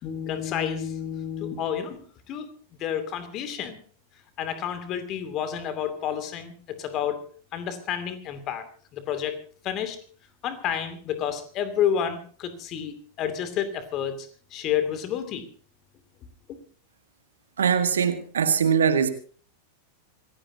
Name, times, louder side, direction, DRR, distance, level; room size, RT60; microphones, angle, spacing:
voice 1, 0.0-2.5 2.8-3.8 4.4-7.3 7.5-8.6 8.9-9.4 9.6-10.0 10.4-15.4 16.5-16.6, left 9 dB, 35° left, 10 dB, 2.6 m, -30 dB
voice 2, 17.6-19.1, right 7 dB, 65° right, 9 dB, 1.9 m, -22 dB
26.5 x 16.0 x 2.8 m, 0.43 s
figure-of-eight pair, 90°, 0 cm